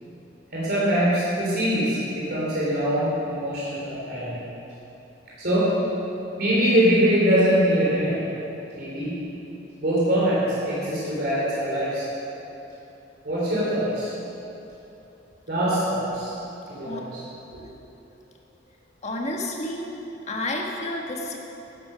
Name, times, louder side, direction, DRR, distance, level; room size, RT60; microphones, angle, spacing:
voice 1, 0.5-4.4 5.4-5.7 6.4-8.2 8.8-9.2 9.8-12.1 13.2-14.1 15.5-16.3 16.7-17.2 17.5-17.6, equal, 55° right, -8 dB, 3.3 m, -23 dB
voice 2, 19.0-19.9 20.3-21.4, left 1 dB, 35° left, 0 dB, 1.4 m, -30 dB
12.5 x 9.9 x 5.6 m, 3.0 s
head